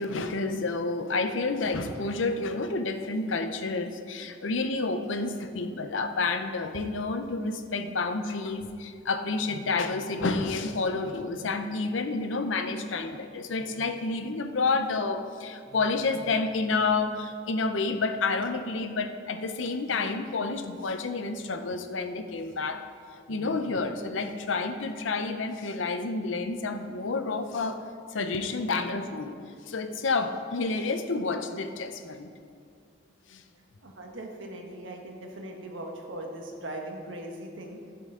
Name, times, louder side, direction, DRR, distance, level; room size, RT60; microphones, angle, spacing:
voice 1, 0.0-22.8 23.3-27.8 28.1-29.4 29.7-32.3 33.3-33.4, left 3 dB, 90° left, 8 dB, 0.7 m, -29 dB
voice 2, 33.8-37.9, right 1 dB, 90° right, 1 dB, 1.5 m, -40 dB
15.0 x 6.7 x 3.8 m, 2.2 s
head